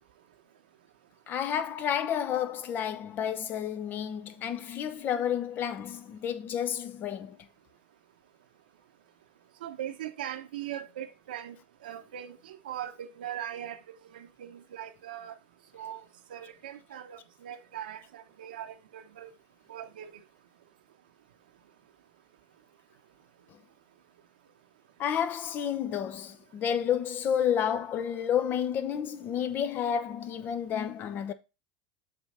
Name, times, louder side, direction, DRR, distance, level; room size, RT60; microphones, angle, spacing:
voice 1, 1.3-7.4 25.0-31.3, left 9 dB, 45° left, 1.1 m, -30 dB
voice 2, 9.6-11.6 11.8-15.4 15.7-16.0 16.3-19.3 19.7-20.1, right 11 dB, 85° right, 1.0 m, -40 dB
6.9 x 3.9 x 5.5 m
hypercardioid pair, 100°, 5 cm